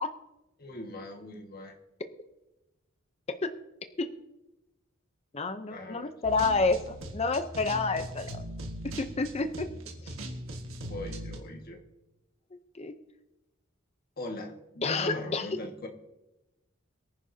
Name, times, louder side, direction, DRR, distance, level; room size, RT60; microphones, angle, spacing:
voice 1, 0.6-1.8 5.7-6.1 6.7-6.8 9.7-9.8 10.9-11.8 14.2-15.9, left 1 dB, 45° left, 2 dB, 1.7 m, -40 dB
voice 2, 5.3-8.4 8.8-9.7 10.1-10.2 12.7-12.9 14.8-15.5, left 3 dB, 30° left, 9 dB, 0.6 m, -29 dB
sound 1, 6.2-11.4, right 1 dB, 85° right, 1.6 m, -40 dB
23.0 x 10.0 x 2.8 m, 0.98 s
head